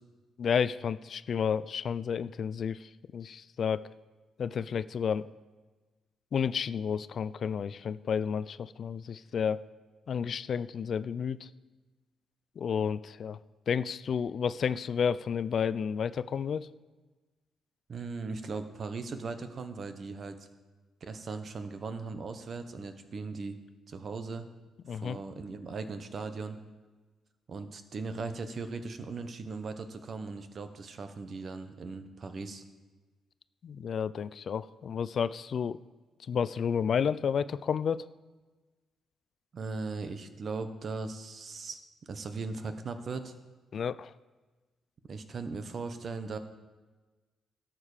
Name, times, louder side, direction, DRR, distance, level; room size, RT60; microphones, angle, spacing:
voice 1, 0.4-3.9 4.4-5.3 6.3-9.6 10.1-11.5 12.6-13.4 13.7-16.7 24.9-25.2 33.6-35.8 36.3-38.1 43.7-44.1, left 7 dB, 55° left, 16 dB, 0.3 m, -31 dB
voice 2, 17.9-20.5 21.0-23.6 23.9-24.5 24.9-26.6 27.5-32.6 39.5-41.8 42.1-43.3 45.1-46.4, right 4 dB, 45° right, 9 dB, 1.0 m, -38 dB
12.5 x 7.4 x 4.9 m, 1.3 s
cardioid pair, 90°, 0 cm